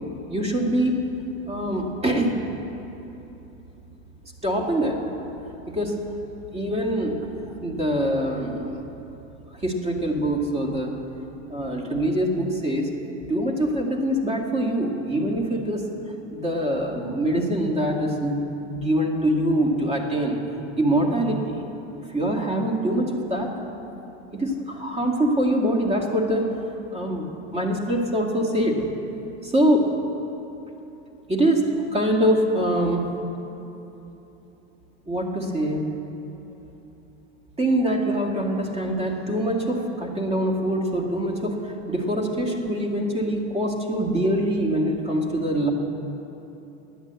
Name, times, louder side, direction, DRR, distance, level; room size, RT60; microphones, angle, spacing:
voice 1, 0.3-1.0 1.5-2.3 4.4-5.0 5.7-6.0 6.5-7.2 7.6-8.8 9.6-10.9 11.5-12.9 13.3-15.9 16.3-18.4 18.7-20.4 20.8-21.6 22.1-23.5 24.3-26.5 26.9-28.8 29.4-29.9 31.3-31.6 31.9-33.0 35.1-35.8 37.6-45.7, right 1 dB, 15° right, 0 dB, 2.1 m, -24 dB
11.0 x 10.0 x 8.1 m, 3.0 s
supercardioid pair, 115°, 36 cm